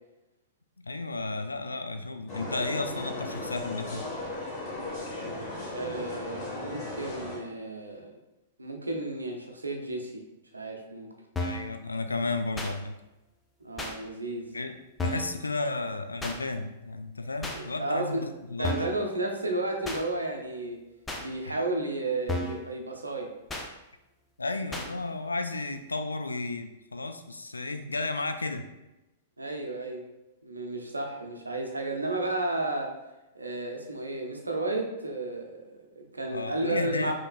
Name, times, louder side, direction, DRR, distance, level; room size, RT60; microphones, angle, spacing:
voice 1, 0.8-4.1 11.4-12.9 14.5-14.7 15.0-18.8 21.4-21.6 24.4-28.6 36.3-37.1, left 3 dB, 80° left, 7 dB, 0.3 m, -33 dB
sound 1, 2.3-7.4, left 2 dB, 30° left, 1.5 m, -36 dB
voice 2, 5.6-8.1 8.6-10.2 10.5-11.1 13.6-14.5 17.5-18.2 18.6-20.8 21.2-23.3 29.4-30.1 30.4-32.9 33.3-37.1, right 2 dB, 80° right, 2 dB, 0.6 m, -33 dB
sound 2, 11.4-11.7 12.6-12.7 13.8-13.9 15.0-15.3 16.2-16.4 17.4-17.6 18.6-19.0 19.8-20.0 21.1-21.2 22.3-22.6 23.5-23.7 24.7-24.9, left 2 dB, 10° left, 0.5 m, -33 dB
5.3 x 2.9 x 2.3 m, 0.98 s
figure-of-eight pair, 105°, 0 cm